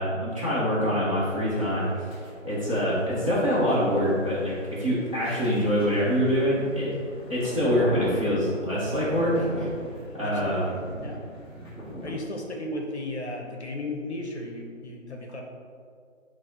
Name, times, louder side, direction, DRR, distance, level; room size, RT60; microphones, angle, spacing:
voice 1, 0.0-2.2 2.4-6.9 7.3-9.7 10.1-10.8, equal, 25° right, -10 dB, 0.9 m, -25 dB
sound 1, 1.1-12.1, equal, 10° right, 1.5 m, -39 dB
voice 2, 10.2-10.7 11.0-11.2 12.0-15.4, left 1 dB, 55° left, 1 dB, 0.6 m, -35 dB
4.6 x 2.1 x 4.2 m, 2.2 s
figure-of-eight pair, 165°, 39 cm